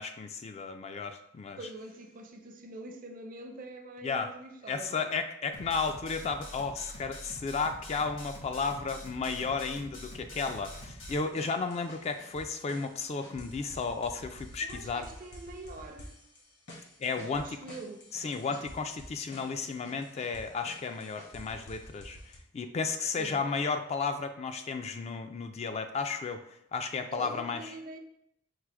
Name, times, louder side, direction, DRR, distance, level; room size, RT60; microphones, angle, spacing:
voice 1, 0.0-1.6 4.0-4.3 4.7-15.1 17.0-17.6 18.1-22.2 22.5-26.4 26.7-27.7, left 4 dB, 35° left, 0.3 m, -33 dB
voice 2, 1.6-5.1 14.6-16.1 17.3-18.1 23.2-23.4 27.1-28.0, right 2 dB, 45° right, 0.5 m, -44 dB
sound 1, 5.5-11.2, equal, 85° left, 1.3 m, -45 dB
sound 2, 10.7-22.4, left 1 dB, 65° left, 1.1 m, -50 dB
4.7 x 2.0 x 4.5 m
head